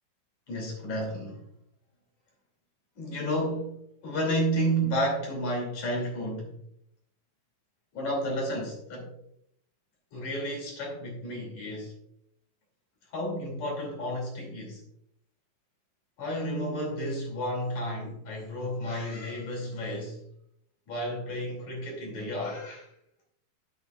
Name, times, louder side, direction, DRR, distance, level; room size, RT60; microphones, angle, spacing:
voice 1, 0.5-1.4 3.0-6.5 7.9-9.1 10.1-12.0 13.1-14.8 16.2-20.2 20.9-22.9, equal, 55° left, 0 dB, 3.9 m, -31 dB
10.0 x 9.6 x 2.4 m, 0.74 s
omnidirectional pair, 4.2 m